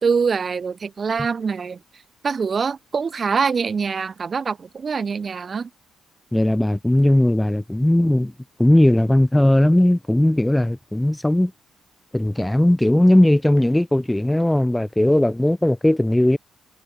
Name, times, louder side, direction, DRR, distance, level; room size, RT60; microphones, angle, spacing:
voice 1, 0.0-1.8 2.2-5.7, right 5 dB, 45° right, 0.8 m, -24 dB
voice 2, 6.3-8.3 8.6-11.5 12.1-16.4, left 1 dB, 10° left, 0.3 m, -18 dB
hypercardioid pair, 50°, 0 cm